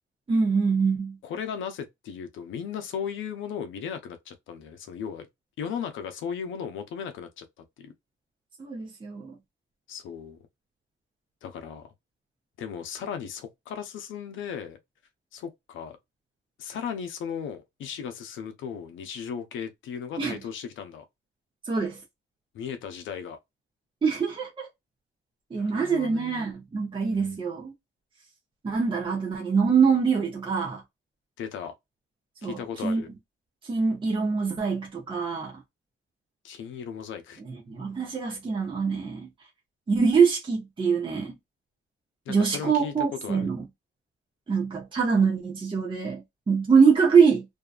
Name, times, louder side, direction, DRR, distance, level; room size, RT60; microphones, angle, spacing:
voice 1, 0.3-1.2 8.6-9.3 20.2-20.4 21.6-22.0 24.0-24.7 25.5-27.7 28.6-30.8 32.4-33.0 33.6-35.6 37.4-39.3 39.9-41.3 42.3-43.6 44.5-47.5, right 5 dB, 25° right, 0.7 m, -24 dB
voice 2, 1.2-5.3 5.6-7.5 7.8-7.9 9.9-10.4 11.4-11.9 12.6-14.8 15.3-16.0 16.6-21.0 22.5-23.4 25.6-26.5 27.1-27.4 31.4-31.7 32.4-33.1 36.4-37.4 42.3-43.5, left 7 dB, 75° left, 0.6 m, -36 dB
2.7 x 2.2 x 2.3 m
cardioid pair, 90°, 20 cm